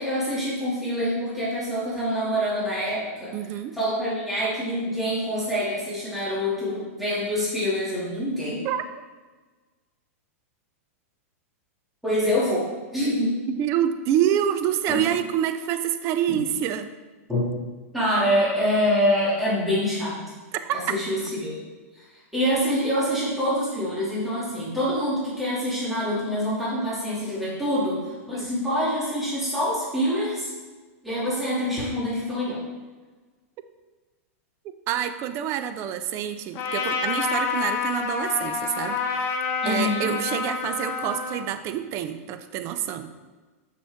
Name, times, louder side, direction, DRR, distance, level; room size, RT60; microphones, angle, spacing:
voice 1, 0.0-3.4 3.7-8.6 12.0-13.4 14.9-15.0 16.3-16.4 17.3-17.4 17.9-20.2 20.7-21.5 22.3-30.5 31.0-32.6 39.6-40.1, equal, ahead, -10 dB, 2.2 m, -25 dB
voice 2, 3.3-3.8 8.6-8.8 13.5-16.9 20.6-20.9 28.3-28.5 34.9-39.4 39.7-43.1, right 10 dB, 35° right, 10 dB, 0.5 m, -27 dB
Trumpet, 36.5-41.5, left 5 dB, 30° left, 1.0 m, -28 dB
6.9 x 6.1 x 3.5 m, 1.3 s
supercardioid pair, 140°, 8 cm